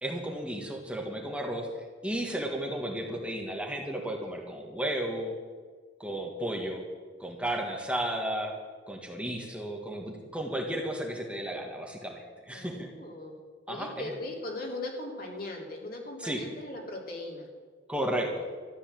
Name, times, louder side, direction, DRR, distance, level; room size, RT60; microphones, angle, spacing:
voice 1, 0.0-5.3 6.0-6.8 7.2-8.5 8.9-12.9 13.7-14.1 16.2-16.4 17.9-18.4, right 1 dB, 5° right, 1 dB, 1.7 m, -33 dB
voice 2, 12.5-13.4 13.7-17.5, left 2 dB, 55° left, 0 dB, 3.3 m, -39 dB
13.5 x 11.0 x 7.7 m, 1.5 s
head